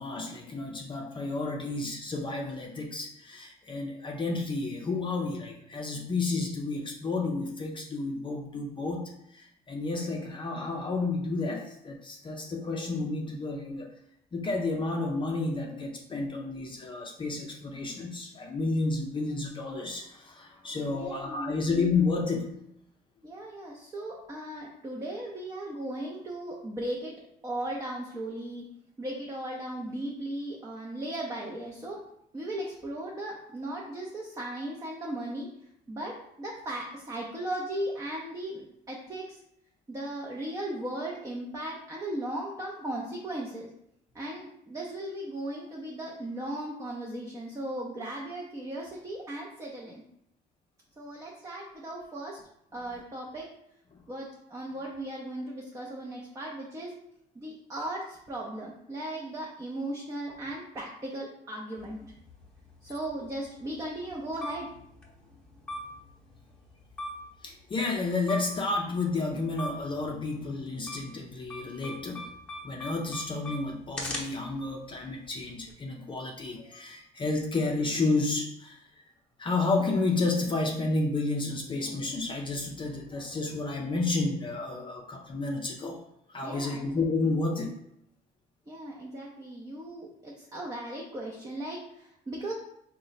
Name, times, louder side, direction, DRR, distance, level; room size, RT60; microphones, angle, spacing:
voice 1, 0.0-13.9 14.3-22.5 67.4-72.3 72.6-78.8 79.4-86.0 86.3-87.7, left 3 dB, 30° left, 1 dB, 0.5 m, -31 dB
voice 2, 20.9-21.7 23.2-27.1 27.4-28.6 29.0-32.0 32.3-35.5 35.9-39.4 39.9-43.7 44.1-50.0 51.0-52.4 52.7-53.5 54.1-56.9 57.3-62.1 62.8-64.7 86.4-87.0 88.7-92.5, right 1 dB, 20° right, -2 dB, 0.6 m, -37 dB
sound 1, 61.8-75.7, left 1 dB, 5° left, 0.9 m, -43 dB
3.8 x 2.2 x 3.9 m, 0.75 s
cardioid pair, 110°, 17 cm